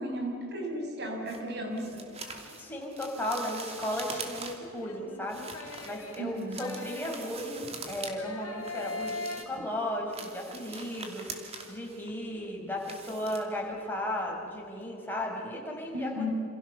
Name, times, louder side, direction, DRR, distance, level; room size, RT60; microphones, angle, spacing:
voice 1, 0.0-2.0 6.2-6.6 9.6-9.7 15.9-16.3, equal, 50° right, 2 dB, 6.3 m, -35 dB
sound 1, 1.3-4.8 5.2-8.2 8.4-9.6 10.0-13.9 14.2-14.4 14.8-14.9, right 4 dB, 30° right, 2.9 m, -44 dB
sound 2, 2.1-3.0 4.8-7.7 8.1-9.4, left 3 dB, 75° left, 3.0 m, -41 dB
voice 2, 2.6-9.2 9.5-16.3, left 1 dB, 10° left, -1 dB, 5.6 m, -35 dB
28.5 x 28.0 x 7.0 m, 2.5 s
head